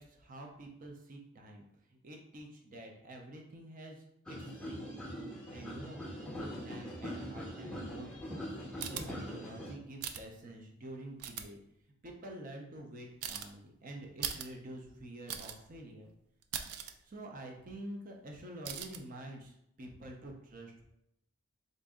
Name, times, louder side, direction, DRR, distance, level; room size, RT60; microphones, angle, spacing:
voice 1, 0.0-1.6 1.9-5.0 5.5-8.5 8.8-11.6 12.0-16.1 17.1-20.7, right 1 dB, 40° right, 1 dB, 0.6 m, -48 dB
sound 1, 4.3-9.7, equal, 5° left, 0.8 m, -42 dB
sound 2, 8.8-9.0 10.0-10.2 11.2-11.4 13.2-13.5 14.2-14.5 14.8-14.9 15.3-15.6 16.0-16.1 16.4-16.9 18.6-19.0, right 8 dB, 85° right, 0.4 m, -39 dB
3.9 x 2.6 x 3.5 m, 0.77 s
head